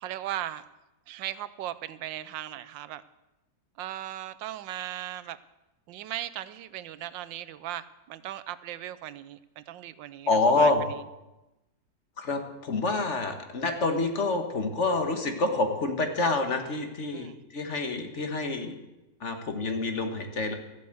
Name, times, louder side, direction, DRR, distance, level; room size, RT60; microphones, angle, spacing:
voice 1, 0.0-0.6 1.1-3.0 3.8-5.4 5.9-11.0 17.1-17.3, right 13 dB, 90° right, 15 dB, 1.4 m, -38 dB
voice 2, 10.3-10.8 12.2-18.7 19.2-20.5, left 3 dB, 40° left, 5 dB, 1.7 m, -27 dB
14.5 x 8.6 x 7.8 m, 0.99 s
omnidirectional pair, 2.0 m